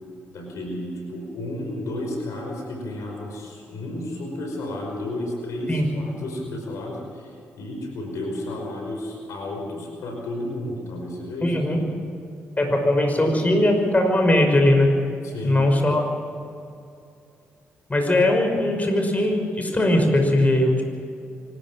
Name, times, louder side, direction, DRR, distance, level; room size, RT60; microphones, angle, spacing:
voice 1, 0.3-11.9 15.2-15.7, left 1 dB, 75° left, 2 dB, 5.3 m, -32 dB
voice 2, 11.4-11.8 12.6-14.9 15.4-16.1 17.9-20.8, left 1 dB, 30° left, 3 dB, 5.7 m, -20 dB
25.5 x 13.5 x 7.6 m, 2.5 s
supercardioid pair, 50°, 5 cm